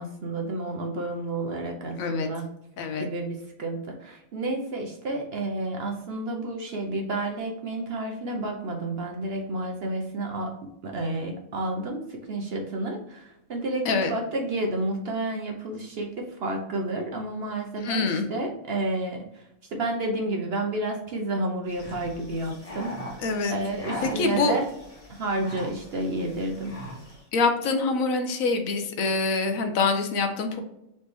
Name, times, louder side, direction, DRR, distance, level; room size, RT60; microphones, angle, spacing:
voice 1, 0.0-2.5 3.0-10.5 10.8-23.2 23.5-24.7 25.1-26.8, right 2 dB, 55° right, 1 dB, 0.7 m, -30 dB
voice 2, 2.0-2.3 2.8-3.1 13.9-14.1 17.8-18.3 23.2-23.6 24.0-24.6 27.3-30.6, left 3 dB, 75° left, 6 dB, 1.1 m, -25 dB
sound 1, 21.7-27.2, equal, 25° left, 1.2 m, -40 dB
4.2 x 3.1 x 3.4 m, 0.85 s
omnidirectional pair, 1.5 m